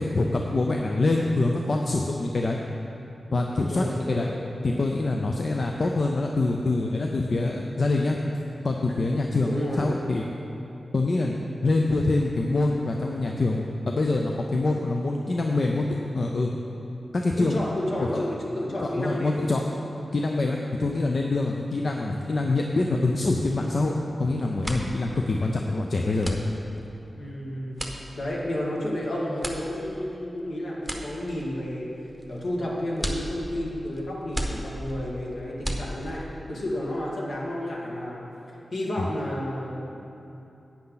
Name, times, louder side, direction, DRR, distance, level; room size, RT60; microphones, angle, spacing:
voice 1, 0.0-2.6 3.3-4.3 4.6-8.2 8.6-10.3 10.9-11.3 11.6-15.8 16.1-16.5 17.1-17.6 18.0-18.2 18.8-19.6 20.1-23.9 24.2-26.4 39.0-39.1, left 2 dB, 50° left, 1 dB, 0.6 m, -25 dB
voice 2, 3.7-4.3 9.4-10.0 17.4-19.4 27.2-27.8 28.1-31.9 32.3-36.2 36.5-38.2 38.7-39.8, left 1 dB, 70° left, -4 dB, 2.0 m, -31 dB
sound 1, 24.1-24.2 24.5-36.4, equal, ahead, 1.0 m, -36 dB
11.0 x 8.7 x 4.0 m, 3.0 s
wide cardioid pair, 95°, 0 cm